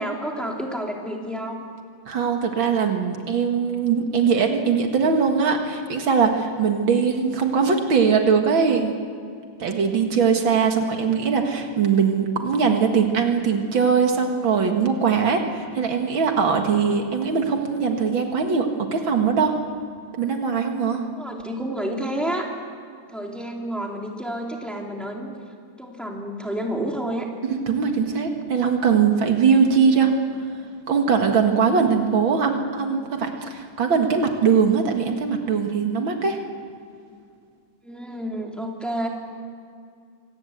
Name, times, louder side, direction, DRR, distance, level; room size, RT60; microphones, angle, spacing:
voice 1, 0.0-1.7 10.7-11.2 21.0-22.5 23.1-25.3 25.8-27.3 29.8-29.9 37.8-39.1, right 1 dB, ahead, 0 dB, 3.2 m, -30 dB
voice 2, 2.1-9.0 9.6-19.6 20.2-21.1 27.4-30.1 30.9-36.4, right 6 dB, 75° right, 4 dB, 2.6 m, -21 dB
25.5 x 19.0 x 8.1 m, 2.3 s
omnidirectional pair, 2.2 m